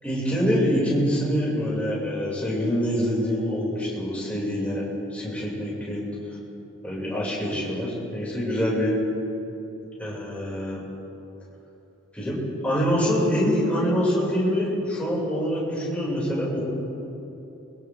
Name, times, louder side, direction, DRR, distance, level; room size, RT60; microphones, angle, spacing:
voice 1, 0.0-6.1 6.8-9.0 10.0-10.8 12.1-16.6, equal, 5° left, -7 dB, 6.7 m, -25 dB
29.5 x 24.0 x 3.8 m, 2.9 s
head